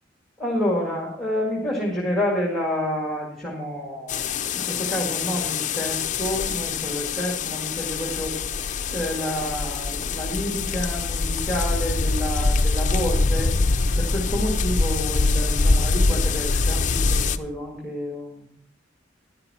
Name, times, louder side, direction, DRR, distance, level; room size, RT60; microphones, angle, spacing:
voice 1, 0.4-4.3 4.5-8.4 8.9-13.5 14.0-18.5, equal, ahead, -1 dB, 2.1 m, -29 dB
sound 1, 4.1-17.4, left 3 dB, 40° left, 0.5 m, -24 dB
12.5 x 11.0 x 4.2 m, 0.67 s
head